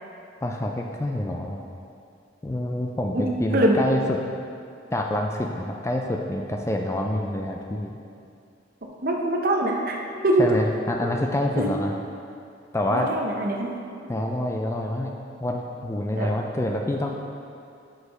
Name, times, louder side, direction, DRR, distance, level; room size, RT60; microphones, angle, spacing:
voice 1, 0.4-1.6 2.4-4.0 4.9-8.0 10.4-11.9 12.7-13.1 14.1-15.1 15.4-17.1, left 1 dB, 15° left, 1 dB, 0.3 m, -27 dB
voice 2, 9.0-10.0 10.2-10.4 11.6-11.7 12.9-13.7 16.2-16.3, right 1 dB, 50° right, 0 dB, 0.8 m, -23 dB
6.5 x 4.9 x 5.3 m, 2.5 s
head